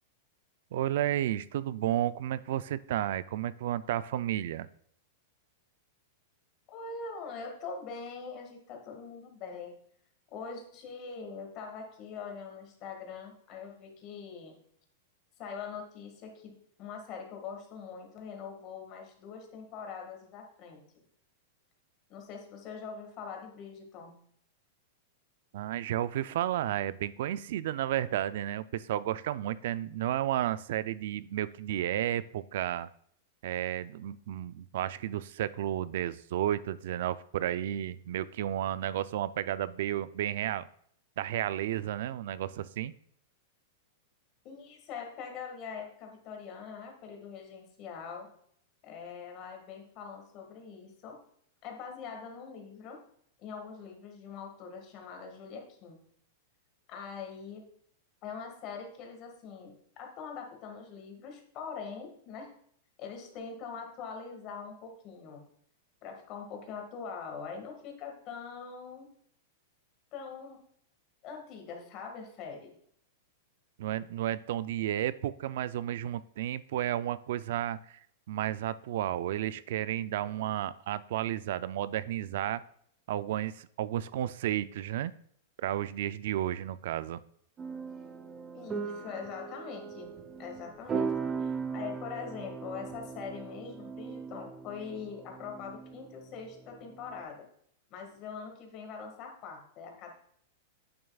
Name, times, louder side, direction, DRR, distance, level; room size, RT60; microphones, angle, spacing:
voice 1, 0.7-4.7 25.5-32.9 33.4-40.7 41.2-42.9 73.8-78.0 78.3-82.6 83.1-85.1 85.6-87.2, right 12 dB, 65° right, 16 dB, 0.4 m, -32 dB
voice 2, 6.7-9.8 10.3-14.6 15.4-20.8 22.1-24.2 44.4-48.3 48.8-51.2 51.6-53.0 53.4-56.0 56.9-57.6 58.2-62.5 63.0-65.5 66.0-69.1 70.1-70.6 71.2-72.7 88.5-90.1 90.4-91.1 91.4-97.5 97.9-100.1, left 6 dB, 35° left, 2 dB, 1.8 m, -43 dB
sound 1, 87.6-97.2, right 5 dB, 20° right, 0.8 m, -39 dB
8.8 x 6.8 x 2.4 m, 0.65 s
supercardioid pair, 155°, 0 cm